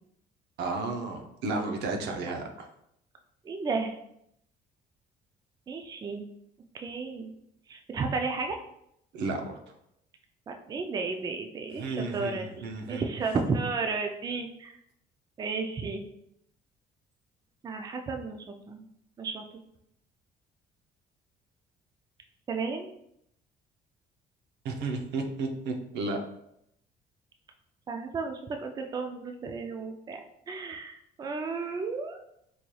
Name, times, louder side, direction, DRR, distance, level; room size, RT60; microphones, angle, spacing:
voice 1, 0.6-2.7 9.1-9.6 11.8-13.0 24.6-26.2, right 3 dB, 80° right, 4 dB, 0.6 m, -33 dB
voice 2, 3.4-3.9 5.7-6.3 6.7-7.3 7.7-8.6 10.5-12.5 12.9-14.8 15.4-16.0 17.6-18.8 19.2-19.4 22.5-22.9 27.9-30.2 30.5-32.2, right 4 dB, 25° right, 5 dB, 0.3 m, -33 dB
4.0 x 3.1 x 2.3 m, 0.76 s
cardioid pair, 110°, 17 cm